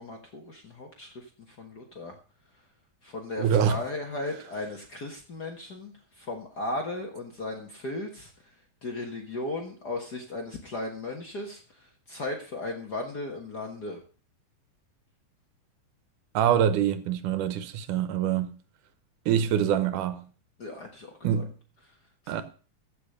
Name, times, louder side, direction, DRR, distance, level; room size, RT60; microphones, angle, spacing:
voice 1, 0.0-2.1 3.0-8.3 8.8-14.0 20.6-21.4 22.2-22.4, left 2 dB, 45° left, 1.4 m, -36 dB
voice 2, 3.4-3.8 16.3-18.6 19.3-20.2 21.2-21.5 22.3-22.4, right 9 dB, 85° right, 2.5 m, -25 dB
15.0 x 5.5 x 6.6 m
omnidirectional pair, 3.6 m